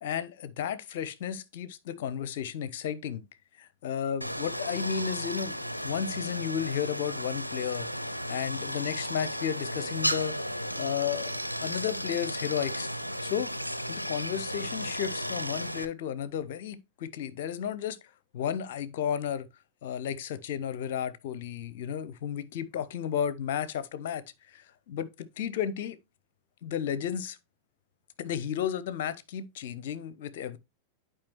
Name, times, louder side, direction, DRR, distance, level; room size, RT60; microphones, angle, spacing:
voice 1, 0.0-3.2 3.6-7.9 8.3-10.3 10.8-11.3 11.6-12.9 13.2-13.5 13.9-18.0 18.3-19.5 19.8-26.0 26.6-27.4 28.2-30.6, left 8 dB, 55° left, 0.7 m, -33 dB
Stream, 4.2-15.9, equal, 90° left, 0.4 m, -34 dB
10.5 x 4.8 x 3.0 m
figure-of-eight pair, 90°, 0 cm